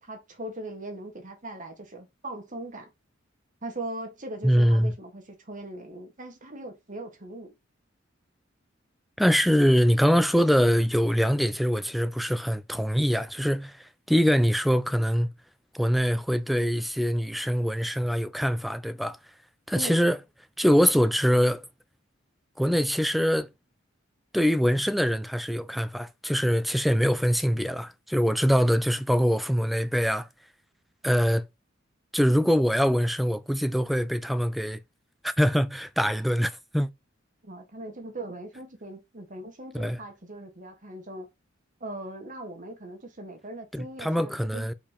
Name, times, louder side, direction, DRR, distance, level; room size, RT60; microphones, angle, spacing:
voice 1, 0.0-2.9 3.6-7.5 19.7-20.0 37.4-41.3 41.8-44.7, right 1 dB, 40° right, 1.9 m, -40 dB
voice 2, 4.4-4.9 9.2-15.3 15.7-19.2 19.7-20.2 20.6-21.6 22.6-23.5 24.3-30.3 31.0-31.4 32.1-34.8 35.2-36.9 39.7-40.0 43.7-44.7, equal, ahead, 0.5 m, -23 dB
5.0 x 4.7 x 5.2 m
head